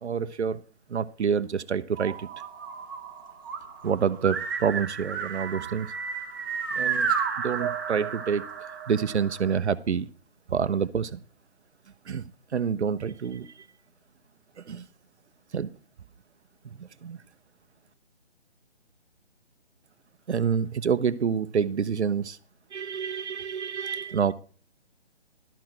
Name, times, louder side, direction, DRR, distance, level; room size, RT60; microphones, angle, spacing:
voice 1, 0.0-0.6 0.9-2.3 3.8-5.9 6.8-7.1 7.4-8.5 8.9-10.1 10.5-11.2 12.1-12.3 12.5-13.7 14.6-14.9 15.5-15.7 16.8-17.2 20.3-22.4 22.7-24.3, right 7 dB, 80° right, 14 dB, 0.8 m, -27 dB
sound 1, 2.0-9.5, right 6 dB, 20° right, 0.9 m, -32 dB
12.0 x 6.0 x 6.2 m, 0.40 s
hypercardioid pair, 170°, 33 cm